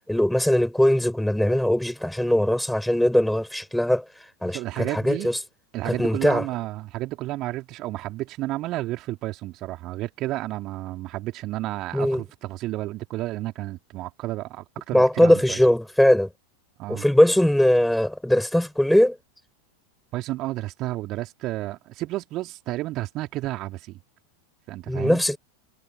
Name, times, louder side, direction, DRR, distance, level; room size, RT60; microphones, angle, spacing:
voice 1, 0.1-4.0 4.4-5.4 5.9-6.4 11.9-12.2 14.9-16.3 16.9-19.2 24.9-25.4, left 1 dB, ahead, 5.9 m, -20 dB
voice 2, 4.4-5.3 5.7-15.6 16.8-17.0 20.1-24.0 24.7-25.2, right 17 dB, 35° right, 3.3 m, -31 dB
figure-of-eight pair, 90°, 0 cm